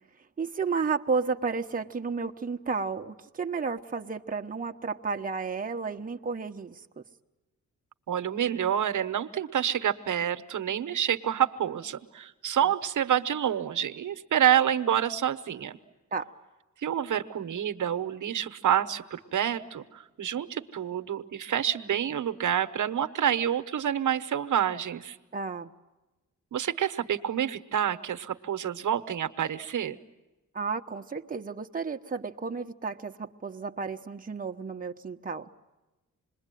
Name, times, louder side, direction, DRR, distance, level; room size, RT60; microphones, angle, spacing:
voice 1, 0.4-7.0 12.6-12.7 16.1-16.3 25.3-25.7 30.5-35.5, right 5 dB, 25° right, 3 dB, 1.1 m, -32 dB
voice 2, 8.1-15.8 16.8-25.2 26.5-30.0, right 9 dB, 70° right, 10 dB, 1.1 m, -28 dB
27.0 x 21.5 x 9.2 m, 1.1 s
wide cardioid pair, 110°, 31 cm